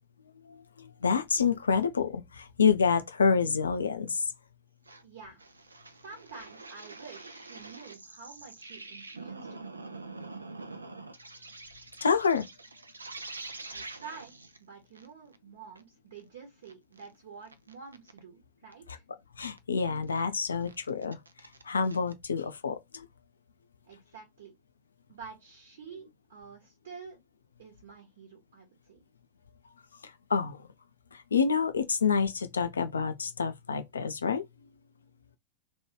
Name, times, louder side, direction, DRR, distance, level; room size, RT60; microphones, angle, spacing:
voice 1, 0.4-4.2 12.0-12.5 19.4-21.2 21.7-23.1 30.3-30.6 31.1-34.4, left 5 dB, 75° left, 0.4 m, -28 dB
sound 1, 4.9-5.0 5.4-14.6 15.0-15.1 15.3-15.4 15.8-15.9 16.2-16.3 16.6-17.1 17.5-18.2 18.7-18.8 19.6-19.7 20.0-20.2 20.6-22.1, right 3 dB, 80° right, 0.4 m, -45 dB
voice 2, 5.0-5.4 6.0-9.8 13.7-19.0 23.9-24.6 25.1-27.2 27.6-29.0, right 5 dB, 60° right, 1.0 m, -49 dB
3.0 x 2.2 x 3.1 m
figure-of-eight pair, 90°, 0 cm